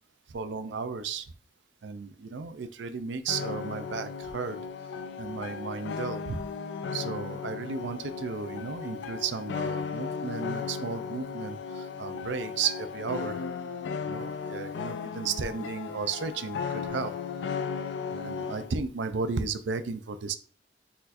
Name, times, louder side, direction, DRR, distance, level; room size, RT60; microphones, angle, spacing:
voice 1, 0.3-1.3 1.8-4.6 5.2-6.4 6.9-13.4 14.1-17.1 18.1-20.4, right 5 dB, 75° right, 0.5 m, -34 dB
sound 1, 3.3-18.7, left 5 dB, 70° left, 0.3 m, -36 dB
4.2 x 4.1 x 2.5 m
head